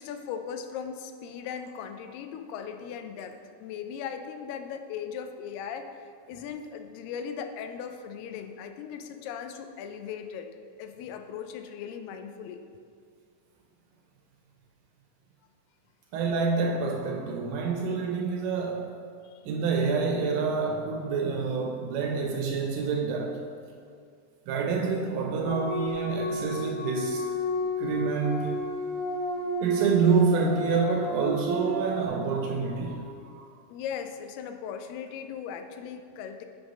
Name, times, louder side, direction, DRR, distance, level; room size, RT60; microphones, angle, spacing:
voice 1, 0.0-10.5 10.8-12.6 19.2-19.4 33.7-36.5, left 7 dB, 90° left, 7 dB, 2.2 m, -38 dB
voice 2, 16.1-18.9 19.5-23.4 24.5-27.2 27.8-28.5 29.6-33.5, right 4 dB, 80° right, 2 dB, 1.9 m, -27 dB
sound 1, 25.5-32.1, right 1 dB, 60° left, 2.2 m, -31 dB
7.9 x 3.5 x 5.3 m, 2.2 s
omnidirectional pair, 3.9 m